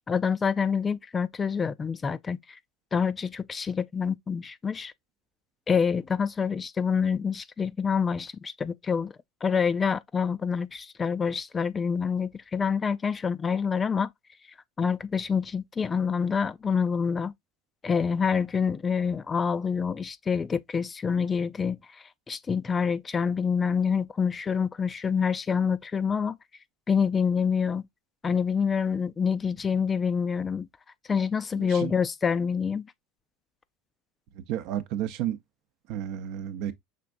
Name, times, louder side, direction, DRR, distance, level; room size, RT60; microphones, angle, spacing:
voice 1, 0.1-2.6 2.9-4.9 5.7-9.1 9.4-14.1 14.8-17.3 17.8-21.8 22.3-26.4 26.9-27.8 28.2-30.7 31.1-32.8, left 6 dB, 20° left, 0.3 m, -27 dB
voice 2, 31.5-31.9 34.4-35.4 35.9-36.7, right 11 dB, 60° right, 0.7 m, -32 dB
5.8 x 3.4 x 2.4 m
supercardioid pair, 125°, 0 cm